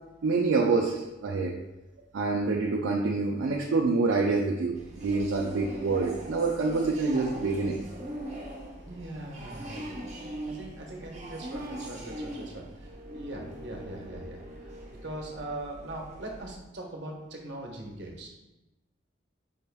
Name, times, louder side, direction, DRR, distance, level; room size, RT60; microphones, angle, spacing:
voice 1, 0.2-1.5 2.1-7.8, right 3 dB, 85° right, -1 dB, 0.4 m, -26 dB
sound 1, 4.7-16.6, right 1 dB, 35° right, 0.8 m, -41 dB
voice 2, 8.8-10.2 10.5-18.3, right 1 dB, 60° right, 0 dB, 0.8 m, -41 dB
5.2 x 3.3 x 2.2 m, 1.0 s
head